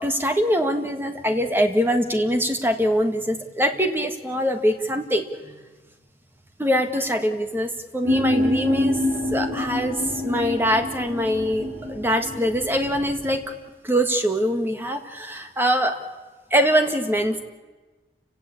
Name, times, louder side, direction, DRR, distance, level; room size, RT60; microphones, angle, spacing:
voice 1, 0.0-5.2 6.6-9.0 9.3-13.4 13.8-16.0 16.5-17.4, equal, 10° right, 5 dB, 1.8 m, -23 dB
sound 1, 8.0-13.4, left 1 dB, 60° right, 7.7 m, -26 dB
29.5 x 17.5 x 8.6 m, 1.3 s
head